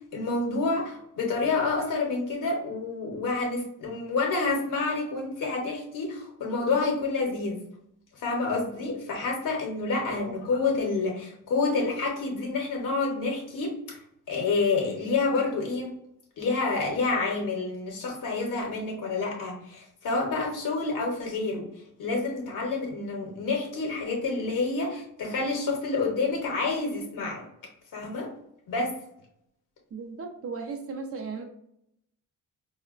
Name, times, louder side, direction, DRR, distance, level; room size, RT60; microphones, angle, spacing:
voice 1, 0.0-7.6 8.1-14.0 14.3-15.9 16.4-21.7 22.0-27.4 27.9-28.3 28.7-28.9, left 3 dB, 75° left, 0 dB, 0.8 m, -28 dB
voice 2, 10.1-10.4 29.9-31.4, right 4 dB, 45° right, 4 dB, 0.5 m, -36 dB
4.3 x 2.1 x 2.4 m, 0.76 s
wide cardioid pair, 170°, 33 cm